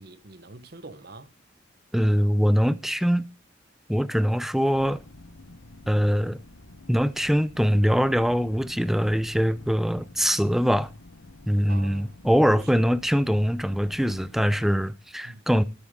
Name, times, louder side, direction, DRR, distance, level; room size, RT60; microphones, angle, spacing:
voice 1, 0.0-1.3 11.7-12.1 12.5-12.9 15.2-15.6, right 2 dB, 50° right, 1.1 m, -44 dB
voice 2, 1.9-3.2 3.9-5.0 5.9-6.4 6.9-10.9 11.5-15.6, equal, ahead, 0.5 m, -23 dB
sound 1, 4.7-14.9, left 2 dB, 85° left, 1.0 m, -48 dB
13.0 x 8.2 x 3.7 m
head